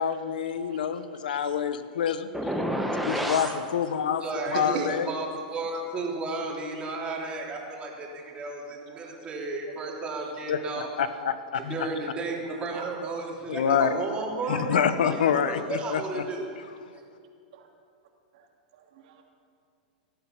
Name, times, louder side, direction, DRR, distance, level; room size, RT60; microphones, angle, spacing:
voice 1, 0.0-2.3 3.0-4.2 4.5-5.1 10.5-11.7 13.5-13.9 14.5-16.2, left 8 dB, 85° left, 12 dB, 0.9 m, -27 dB
voice 2, 0.7-1.5 3.5-3.6 4.7-4.9 6.7-7.0 8.9-9.0 9.6-9.7 10.2-10.3 17.5-17.7 18.3-18.5 18.7-19.2, right 8 dB, 65° right, 1 dB, 2.7 m, -41 dB
sound 1, 2.3-3.6, equal, ahead, 1.4 m, -28 dB
voice 3, 4.2-10.9 11.5-16.5, right 3 dB, 25° right, -2 dB, 3.5 m, -33 dB
18.5 x 12.5 x 5.9 m, 2.4 s
hypercardioid pair, 125°, 5 cm